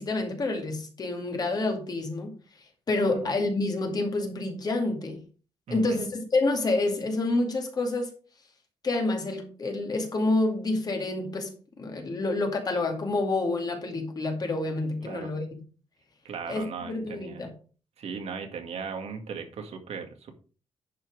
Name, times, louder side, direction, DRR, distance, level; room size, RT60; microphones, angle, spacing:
voice 1, 0.0-2.3 2.9-5.2 5.7-8.1 8.8-15.5 16.5-17.6, left 2 dB, 35° left, 2.3 m, -28 dB
voice 2, 5.7-6.0 15.0-15.3 16.2-17.5 18.0-20.3, right 5 dB, 75° right, 2.1 m, -37 dB
10.5 x 5.9 x 4.8 m
wide cardioid pair, 165°, 11 cm